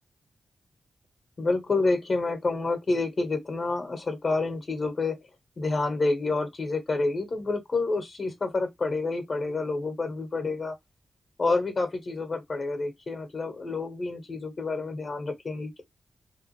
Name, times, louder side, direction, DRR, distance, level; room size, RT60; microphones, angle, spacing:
voice 1, 1.4-5.2 5.6-10.7 11.4-15.8, left 3 dB, 40° left, 1.2 m, -28 dB
3.4 x 2.5 x 3.1 m
wide cardioid pair, 120°, 0 cm